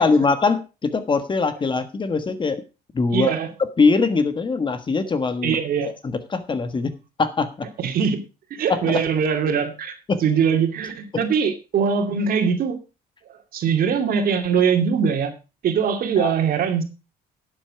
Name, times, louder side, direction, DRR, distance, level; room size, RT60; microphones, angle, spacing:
voice 1, 0.0-2.6 2.9-3.3 3.8-5.6 6.0-7.7 8.7-9.0 10.1-10.2 16.2-16.3, left 4 dB, 30° left, 10 dB, 1.4 m, -22 dB
voice 2, 3.1-3.5 5.4-5.9 7.8-8.2 8.5-9.9 10.2-12.8 13.3-15.3 15.6-16.8, right 6 dB, 60° right, 6 dB, 2.4 m, -22 dB
11.5 x 8.0 x 4.8 m, 0.30 s
cardioid pair, 110°, 17 cm